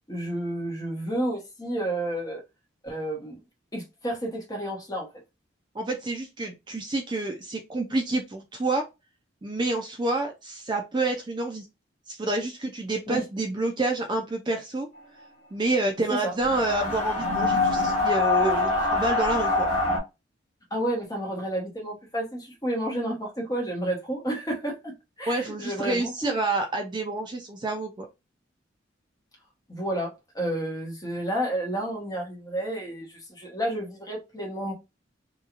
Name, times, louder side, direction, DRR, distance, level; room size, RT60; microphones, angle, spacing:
voice 1, 0.1-2.4 2.8-3.4 3.7-5.1 13.1-13.2 16.1-16.3 20.7-26.3 29.7-30.1 30.3-34.7, right 1 dB, 20° left, 0.9 m, -31 dB
voice 2, 5.7-8.8 9.4-11.7 12.1-14.9 15.5-19.7 25.3-28.1, right 2 dB, 25° right, 0.4 m, -28 dB
sound 1, 16.4-20.0, left 3 dB, 40° left, 1.2 m, -24 dB
2.9 x 2.3 x 2.4 m
head